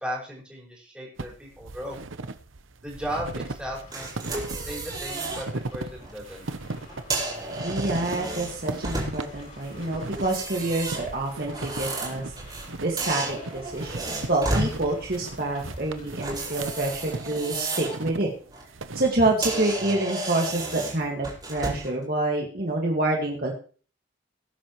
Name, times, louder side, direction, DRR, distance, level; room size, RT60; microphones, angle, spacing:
voice 1, 0.0-2.0 2.8-4.1 4.7-6.4, equal, 5° right, -4 dB, 5.4 m, -36 dB
sound 1, 1.2-19.9, right 2 dB, 85° right, 1.0 m, -38 dB
sound 2, 3.0-17.1, left 1 dB, 40° left, 6.3 m, -49 dB
sound 3, 3.9-5.5 5.9-6.1 6.9-9.4 10.1-12.7 13.0-14.7 16.2-18.0 18.4-18.6 19.1-19.2 19.4-22.0, right 2 dB, 20° right, 5.0 m, -32 dB
voice 2, 7.6-12.2 12.8-18.3 18.9-23.5, right 2 dB, 50° right, 0 dB, 2.0 m, -27 dB
19.5 x 10.0 x 3.2 m, 0.40 s
head